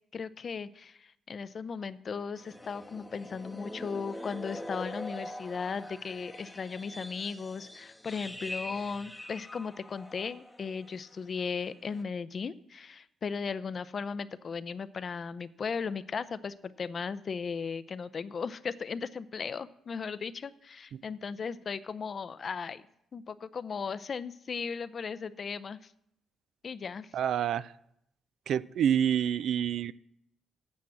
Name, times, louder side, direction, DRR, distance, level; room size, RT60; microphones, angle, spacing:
voice 1, 0.1-22.8 23.1-25.8 26.6-27.1, left 5 dB, 45° left, 0.5 m, -37 dB
sound 1, 2.4-11.0 11.2-11.5 11.9-12.0, left 1 dB, 5° left, 0.8 m, -44 dB
voice 2, 27.1-27.7 28.5-29.9, right 9 dB, 70° right, 0.3 m, -28 dB
8.4 x 7.3 x 7.6 m
cardioid pair, 90°, 0 cm